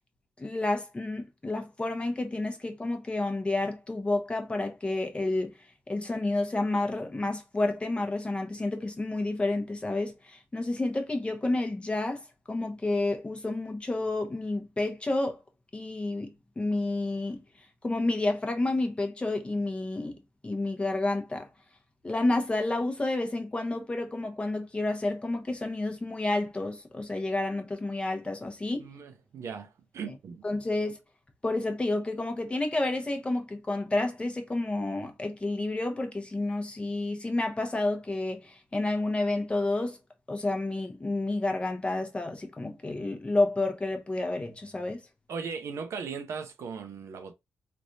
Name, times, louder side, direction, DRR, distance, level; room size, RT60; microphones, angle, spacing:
voice 1, 0.4-5.5 5.9-12.2 12.5-15.4 15.7-17.4 17.8-20.2 20.4-21.5 22.0-28.8 30.4-31.0 31.4-40.0 40.3-45.0, left 2 dB, 20° left, 0.9 m, -30 dB
voice 2, 28.8-30.4 45.3-47.3, right 5 dB, 65° right, 0.6 m, -38 dB
3.2 x 2.5 x 2.7 m
cardioid pair, 75°, 5 cm